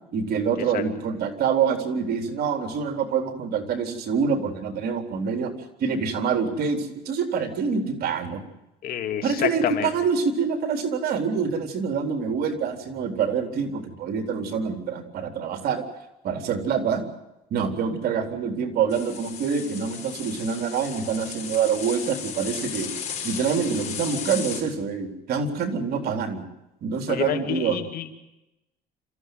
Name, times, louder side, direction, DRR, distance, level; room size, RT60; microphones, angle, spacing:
voice 1, 0.1-5.5 5.8-8.4 9.2-15.8 16.2-17.0 17.5-22.9 23.2-26.5 26.8-27.8, right 6 dB, 65° right, 6 dB, 4.0 m, -26 dB
voice 2, 8.8-9.9 27.1-28.1, left 10 dB, 60° left, 5 dB, 2.8 m, -28 dB
sound 1, 18.9-24.6, left 7 dB, 40° left, 6.5 m, -35 dB
27.0 x 15.0 x 9.4 m, 0.93 s
cardioid pair, 110°, 17 cm